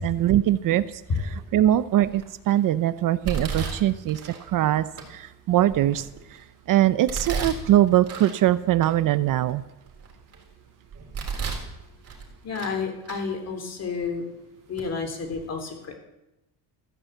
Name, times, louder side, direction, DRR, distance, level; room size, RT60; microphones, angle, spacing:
voice 1, 0.0-6.4 6.7-9.6, right 13 dB, 55° right, 15 dB, 0.6 m, -22 dB
Domestic sounds home sounds, 1.1-1.5 2.1-2.5 3.2-4.4 5.0-5.1 5.7-6.4 7.1-8.4 8.8-8.9 9.5-10.4 10.9-11.7 12.0-12.8 13.0-13.2 14.0-14.1 14.8-14.9 15.2-15.4, right 5 dB, 35° right, 3.7 m, -34 dB
voice 2, 12.4-14.2 14.7-16.0, left 5 dB, 40° left, 5 dB, 3.0 m, -31 dB
14.5 x 10.0 x 7.9 m, 0.91 s
cardioid pair, 155°, 40 cm